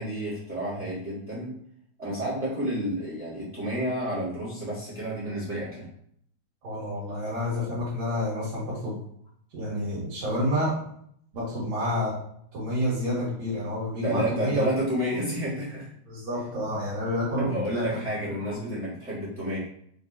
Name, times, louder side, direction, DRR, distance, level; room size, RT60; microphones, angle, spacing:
voice 1, 0.0-1.5 2.0-5.8 14.0-15.9 17.4-19.6, right 1 dB, 35° right, -10 dB, 1.0 m, -30 dB
voice 2, 6.6-8.9 9.5-10.7 11.3-12.1 12.5-14.6 16.1-18.0 18.6-18.8, left 1 dB, 70° right, -9 dB, 2.5 m, -29 dB
5.3 x 2.2 x 2.6 m, 0.68 s
omnidirectional pair, 3.4 m